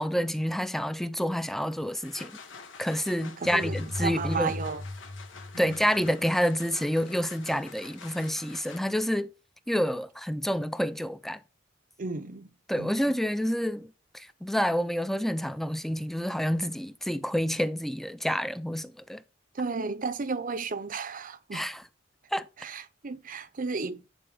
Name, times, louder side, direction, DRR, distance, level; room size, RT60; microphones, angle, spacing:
voice 1, 0.0-2.3 2.8-4.5 5.6-9.3 9.7-11.4 12.7-19.2 21.5-21.8 22.3-22.5, equal, ahead, 0.5 m, -28 dB
sound 1, 1.8-9.1, left 5 dB, 85° left, 1.4 m, -48 dB
voice 2, 3.4-4.8 5.5-5.8 12.0-12.5 12.8-12.9 19.5-21.7 22.6-24.1, right 4 dB, 45° right, 0.7 m, -33 dB
sound 2, 3.5-6.3, left 2 dB, 30° left, 1.2 m, -37 dB
10.0 x 4.4 x 3.5 m
head